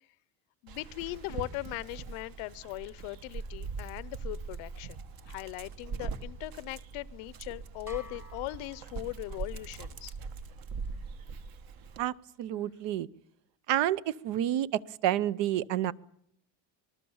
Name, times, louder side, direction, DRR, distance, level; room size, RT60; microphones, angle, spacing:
voice 1, 0.6-5.0 5.3-10.2, left 20 dB, 80° left, 20 dB, 0.8 m, -39 dB
Dog, 0.7-12.0, right 5 dB, 45° right, 1.3 m, -41 dB
sound 1, 7.9-9.6, left 2 dB, 5° right, 1.0 m, -51 dB
voice 2, 12.0-13.1 13.7-15.9, right 12 dB, 60° right, 18 dB, 0.9 m, -29 dB
26.0 x 20.0 x 7.2 m, 0.71 s
cardioid pair, 180°, 48 cm